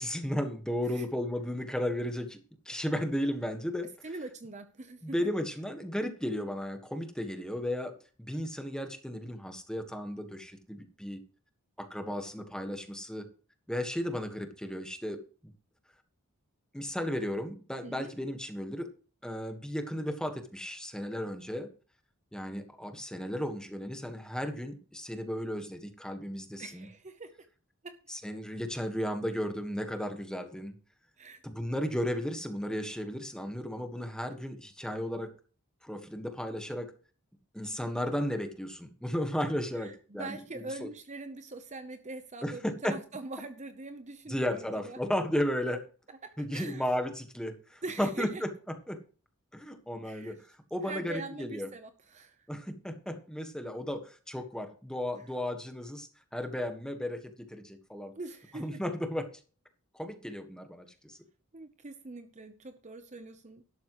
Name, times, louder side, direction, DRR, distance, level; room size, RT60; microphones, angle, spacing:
voice 1, 0.0-2.4 2.6-3.9 5.0-11.2 11.8-13.3 13.7-15.5 16.7-18.9 19.2-21.7 22.3-26.9 28.1-30.8 31.4-35.3 35.8-36.9 37.5-40.4 40.8-40.9 42.4-42.9 44.3-45.8 46.4-48.5 48.9-49.0 49.5-50.4 50.7-51.7 52.5-58.1 58.5-59.3 59.9-61.2, equal, 5° left, 6 dB, 1.5 m, -34 dB
voice 2, 4.0-5.1 17.8-18.1 26.6-27.3 27.8-27.9 31.2-31.4 39.8-45.0 46.2-46.8 47.8-48.4 50.0-50.3 50.8-52.3 58.1-58.8 61.5-63.6, right 3 dB, 30° right, 9 dB, 0.8 m, -43 dB
12.0 x 12.0 x 3.1 m, 0.37 s
head